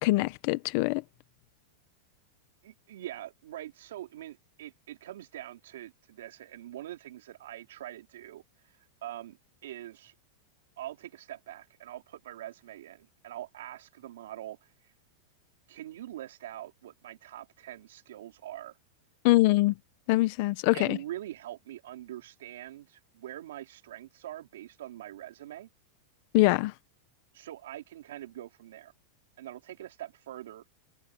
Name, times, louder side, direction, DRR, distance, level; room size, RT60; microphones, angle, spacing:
voice 1, 0.0-1.0 19.2-19.7 20.1-21.0 26.3-26.7, left 19 dB, 40° left, 0.8 m, -23 dB
voice 2, 2.6-10.1 10.8-14.7 15.7-18.8 20.7-25.7 27.3-28.9 29.4-30.6, right 13 dB, 75° right, 4.0 m, -44 dB
supercardioid pair, 175°, 0 cm